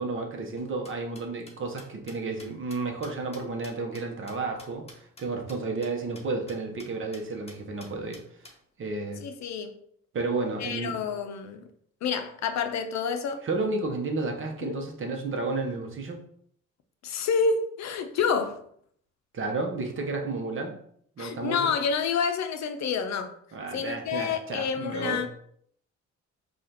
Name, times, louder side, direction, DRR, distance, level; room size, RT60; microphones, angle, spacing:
voice 1, 0.0-8.2 8.8-9.2 10.1-11.0 13.4-16.2 19.3-20.8 21.2-21.7 23.5-25.2, right 3 dB, 45° right, 0.9 m, -32 dB
sound 1, 0.6-5.2 5.5-5.6 5.8-5.9 6.1-6.2 6.5-6.9 7.1-7.2 7.5-8.5, left 2 dB, 20° left, 0.9 m, -49 dB
voice 2, 9.2-9.7 10.6-11.7 12.0-13.4 14.6-14.8 17.0-18.6 21.2-23.3 23.7-25.3, left 6 dB, 65° left, 0.6 m, -28 dB
4.8 x 2.5 x 2.8 m
cardioid pair, 90°, 30 cm